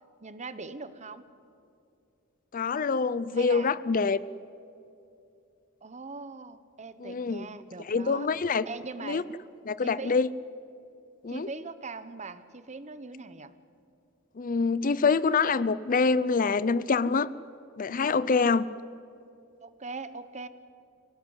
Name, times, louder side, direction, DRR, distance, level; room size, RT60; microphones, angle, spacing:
voice 1, 0.2-1.2 3.3-3.7 5.8-8.3 8.6-9.3 9.8-10.2 11.3-13.5 19.6-20.5, right 3 dB, 35° right, 13 dB, 1.1 m, -41 dB
voice 2, 2.5-4.2 7.0-7.5 7.8-8.6 9.0-9.2 9.7-10.3 11.2-11.5 14.4-17.3 17.8-18.7, left 4 dB, 40° left, 18 dB, 0.5 m, -25 dB
25.0 x 17.5 x 9.7 m, 2.7 s
head